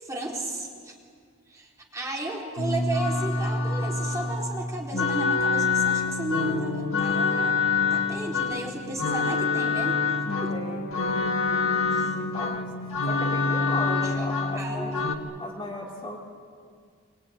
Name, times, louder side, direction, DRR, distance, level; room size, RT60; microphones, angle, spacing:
voice 1, 0.0-0.9 1.5-7.6 7.9-10.0 10.4-10.5 11.9-12.1 13.9-15.1, right 1 dB, 15° right, -3 dB, 4.0 m, -34 dB
sound 1, 2.6-15.2, left 4 dB, 70° left, 1.9 m, -26 dB
voice 2, 10.5-15.0 15.4-16.2, left 1 dB, 25° left, -2 dB, 3.0 m, -37 dB
24.5 x 23.5 x 9.5 m, 2.1 s
head